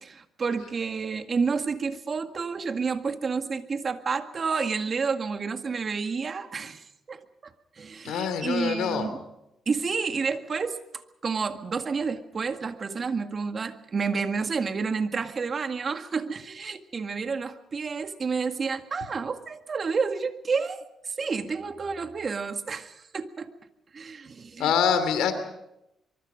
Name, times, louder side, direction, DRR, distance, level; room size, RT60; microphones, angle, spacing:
voice 1, 0.0-7.5 7.8-9.2 9.7-10.8 11.2-23.5 23.9-24.7, right 5 dB, 40° right, 8 dB, 1.9 m, -30 dB
voice 2, 8.0-9.1 24.6-25.3, left 7 dB, 85° left, 10 dB, 3.1 m, -25 dB
24.0 x 24.0 x 5.2 m, 0.85 s
cardioid pair, 90°, 0 cm